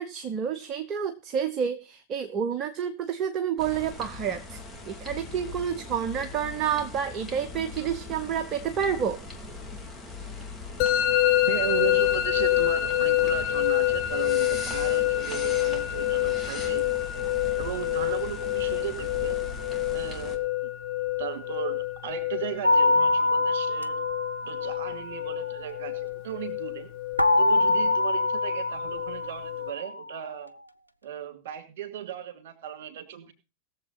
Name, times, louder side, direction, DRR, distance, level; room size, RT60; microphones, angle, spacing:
voice 1, 0.0-4.6 4.9-9.2, right 8 dB, 30° right, 8 dB, 1.0 m, -29 dB
sound 1, 3.6-20.4, left 3 dB, 5° left, 2.7 m, -40 dB
Musical instrument, 10.8-29.7, left 14 dB, 45° left, 1.3 m, -27 dB
voice 2, 11.5-16.9 17.6-19.4 19.9-20.7 21.2-24.0 24.5-26.9 27.4-30.5 31.0-33.3, right 10 dB, 55° right, 7 dB, 2.8 m, -36 dB
sound 2, 22.6-25.5 27.2-30.0, left 2 dB, 90° right, 0.6 m, -25 dB
20.0 x 7.4 x 4.1 m, 0.31 s
figure-of-eight pair, 90°, 0 cm